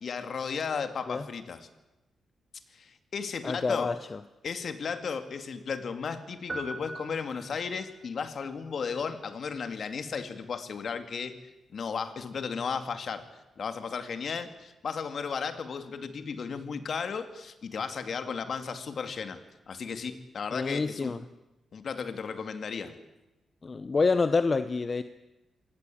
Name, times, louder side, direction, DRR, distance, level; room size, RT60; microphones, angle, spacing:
voice 1, 0.0-1.7 2.7-3.9 4.4-11.3 11.7-13.2 13.6-19.4 19.7-21.1 21.7-22.9, left 6 dB, 55° left, 9 dB, 2.3 m, -34 dB
voice 2, 3.4-4.2 20.5-21.2 23.6-25.0, left 4 dB, 35° left, 12 dB, 0.8 m, -27 dB
sound 1, 6.5-8.0, right 2 dB, 30° right, 3.8 m, -40 dB
25.5 x 18.5 x 8.7 m, 1.0 s
cardioid pair, 105°, 0 cm